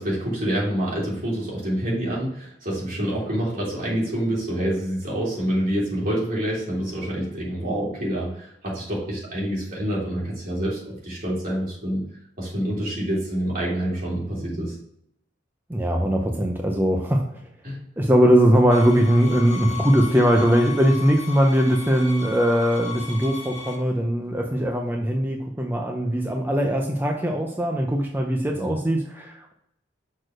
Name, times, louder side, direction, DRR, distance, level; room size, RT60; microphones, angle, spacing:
voice 1, 0.0-12.0 12.4-14.8 17.6-17.8 28.5-28.7, right 1 dB, 50° right, -6 dB, 3.4 m, -27 dB
voice 2, 15.7-17.4 18.0-29.5, equal, 10° right, 1 dB, 0.6 m, -20 dB
sound 1, 18.7-23.7, left 6 dB, 70° right, 1.9 m, -36 dB
6.4 x 4.3 x 6.3 m, 0.74 s
head